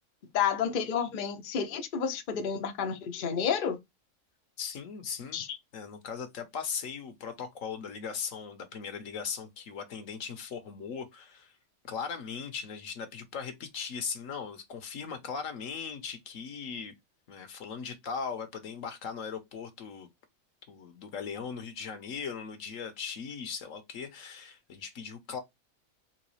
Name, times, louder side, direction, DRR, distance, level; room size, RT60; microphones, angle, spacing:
voice 1, 0.3-3.8 5.3-5.6, left 7 dB, 50° left, 0.7 m, -30 dB
voice 2, 4.6-5.4 5.7-11.5 11.8-16.9 17.3-20.1 20.7-25.4, left 6 dB, 75° left, 1.2 m, -38 dB
3.9 x 3.0 x 3.1 m
omnidirectional pair, 1.4 m